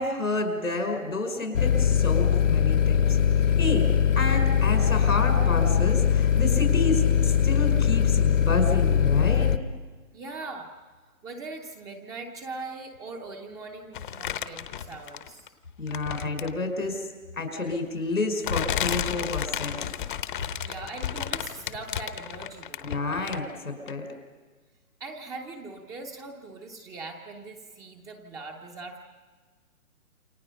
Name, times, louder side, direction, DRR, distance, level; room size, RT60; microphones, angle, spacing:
voice 1, 0.0-3.2 3.6-3.9 4.2-9.5 15.8-17.1 17.4-19.9 22.8-24.0, left 3 dB, 90° left, 4 dB, 5.3 m, -29 dB
sound 1, 1.5-9.6, left 8 dB, 65° left, 1.4 m, -21 dB
voice 2, 10.1-10.7 11.2-15.5 20.6-23.0 25.0-29.0, right 3 dB, 10° right, 2 dB, 0.7 m, -40 dB
sound 2, 13.9-15.5 15.9-16.6 17.6-17.7 18.4-23.6 23.9-24.0, left 10 dB, 35° left, 1.0 m, -32 dB
28.5 x 25.0 x 5.6 m, 1.4 s
hypercardioid pair, 145°, 41 cm